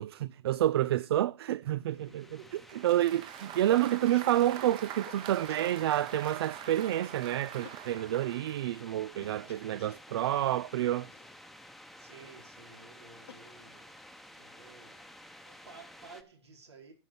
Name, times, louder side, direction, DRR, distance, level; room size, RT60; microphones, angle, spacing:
voice 1, 0.0-2.2 2.8-11.1, right 13 dB, 65° right, 0.4 m, -29 dB
sound 1, 1.8-16.2, left 1 dB, ahead, 0.9 m, -52 dB
voice 2, 1.9-2.9 11.6-15.1 15.4-16.9, right 4 dB, 90° right, 4.6 m, -54 dB
Applause, 2.7-8.7, right 11 dB, 35° right, 1.0 m, -44 dB
sound 2, 3.1-6.3 6.6-6.7 7.0-7.2 7.6-8.6 9.2-10.3 11.1-12.2 12.8-14.0, left 10 dB, 75° left, 1.1 m, -56 dB
9.5 x 6.4 x 7.1 m
hypercardioid pair, 115°, 14 cm